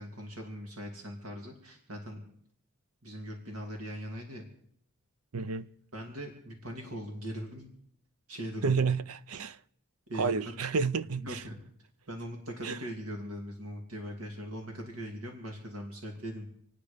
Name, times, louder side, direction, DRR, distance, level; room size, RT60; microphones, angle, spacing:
voice 1, 0.0-2.2 3.0-4.4 5.5-5.6 5.9-7.7 8.3-8.7 10.1-10.4 11.1-11.6 12.1-16.5, equal, 75° right, 2.7 m, -40 dB
voice 2, 5.3-5.7 8.6-9.6 10.1-11.4 12.6-12.8, right 5 dB, 90° right, 0.6 m, -30 dB
27.5 x 9.3 x 5.1 m
head